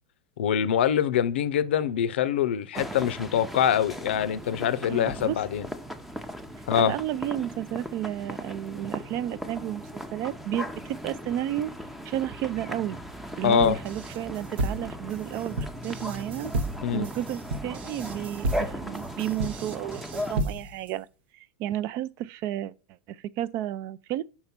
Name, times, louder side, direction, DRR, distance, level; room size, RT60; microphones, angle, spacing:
voice 1, 0.4-5.7 6.7-6.9 13.4-13.8 16.8-17.1, left 9 dB, 85° left, 0.6 m, -24 dB
sound 1, 2.7-20.4, equal, 5° right, 0.6 m, -38 dB
voice 2, 4.9-5.4 6.8-11.7 12.0-13.0 13.4-16.5 16.9-21.1 21.3-22.7 23.1-24.2, right 12 dB, 45° right, 0.5 m, -32 dB
sound 2, 13.6-20.9, right 1 dB, 80° right, 1.0 m, -32 dB
5.5 x 4.3 x 5.9 m
supercardioid pair, 125°, 6 cm